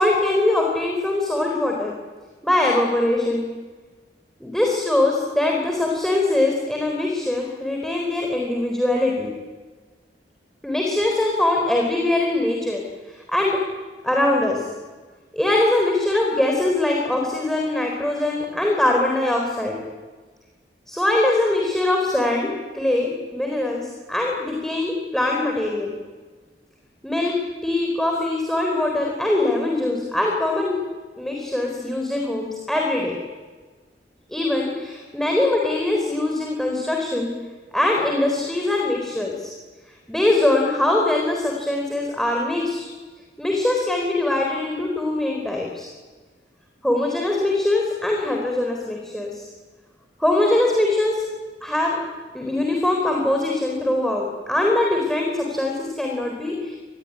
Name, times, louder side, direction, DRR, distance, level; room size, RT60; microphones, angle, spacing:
voice 1, 0.0-2.0 2.4-3.5 4.4-9.3 10.6-12.8 13.1-13.6 14.0-14.6 15.3-19.7 20.9-25.9 27.0-27.3 27.6-30.8 31.2-33.1 34.3-37.3 37.7-39.5 40.1-42.9 43.4-45.9 46.8-49.5 50.2-51.2 51.6-52.0 52.3-56.8, left 2 dB, ahead, 0 dB, 4.1 m, -22 dB
27.0 x 20.5 x 9.7 m, 1.4 s
head